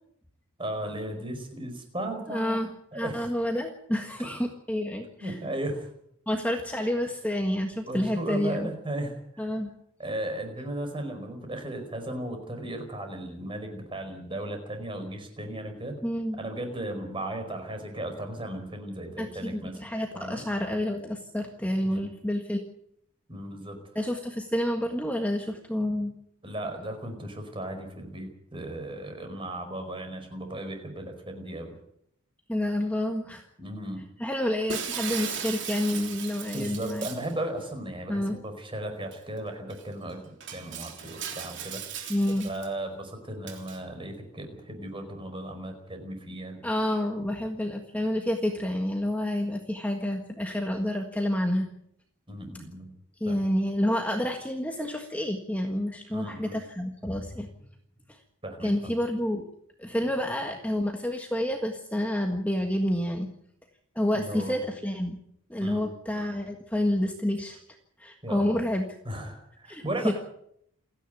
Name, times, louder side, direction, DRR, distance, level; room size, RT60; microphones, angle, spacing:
voice 1, 0.6-2.7 2.9-3.2 5.2-5.9 7.9-9.4 10.0-16.0 16.3-19.8 20.1-20.4 21.8-22.1 23.3-23.8 26.4-31.7 33.6-34.0 36.5-41.8 42.4-46.6 52.3-52.9 53.2-53.4 56.1-56.5 58.4-58.9 64.1-64.6 65.6-65.8 68.2-68.6 69.0-70.1, right 1 dB, 25° right, 6 dB, 4.9 m, -36 dB
voice 2, 2.3-2.7 2.9-5.4 6.3-8.7 9.4-9.7 16.0-16.4 19.2-22.7 23.9-26.1 32.5-33.4 34.2-37.1 38.1-38.4 42.1-42.5 46.6-51.7 53.2-57.5 58.6-59.4 59.8-63.3 63.9-65.2 65.5-67.6 68.0-68.9 69.7-70.1, left 1 dB, 5° left, 3 dB, 1.6 m, -29 dB
Shatter, 34.7-37.3 39.1-39.2 39.7-39.8 40.4-42.7 43.5-43.8, right 8 dB, 55° right, 3.5 m, -37 dB
28.5 x 10.5 x 9.2 m, 0.72 s
head